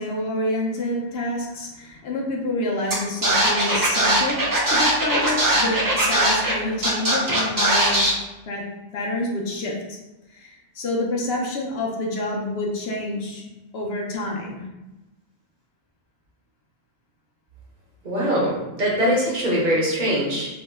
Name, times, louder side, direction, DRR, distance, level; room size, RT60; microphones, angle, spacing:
voice 1, 0.0-8.0 8.5-8.6 8.9-10.0 10.3-13.4 13.7-14.6, left 2 dB, 75° left, -1 dB, 0.9 m, -28 dB
Scratching (performance technique), 2.9-3.0 3.2-6.5 6.8-8.1, right 1 dB, 30° right, 0.4 m, -20 dB
voice 2, 18.0-20.5, equal, 50° right, -5 dB, 0.9 m, -22 dB
2.9 x 2.0 x 3.4 m, 1.0 s
omnidirectional pair, 1.1 m